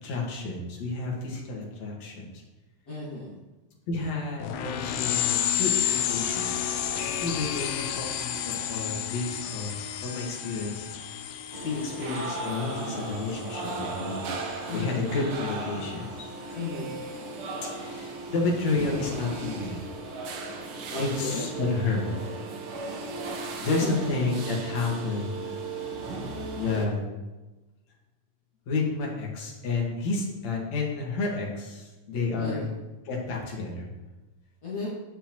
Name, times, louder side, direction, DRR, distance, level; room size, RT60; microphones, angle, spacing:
voice 1, 0.0-2.4 3.9-6.7 7.2-9.7 10.0-10.8 11.6-14.3 14.7-16.3 17.6-19.8 20.2-22.1 23.6-25.5 25.8-26.0 26.5-27.0 28.7-33.9, left 3 dB, 60° left, -2 dB, 2.7 m, -31 dB
voice 2, 2.9-3.4 14.7-15.1 16.5-16.9 20.9-21.4 23.8-24.1 32.4-32.7 34.6-34.9, left 3 dB, 35° left, -9 dB, 1.5 m, -34 dB
sound 1, 4.4-14.5, left 10 dB, 90° left, 2.3 m, -31 dB
sound 2, 11.5-26.9, right 3 dB, 85° right, 1.1 m, -36 dB
8.9 x 8.4 x 3.0 m, 1.1 s
omnidirectional pair, 3.7 m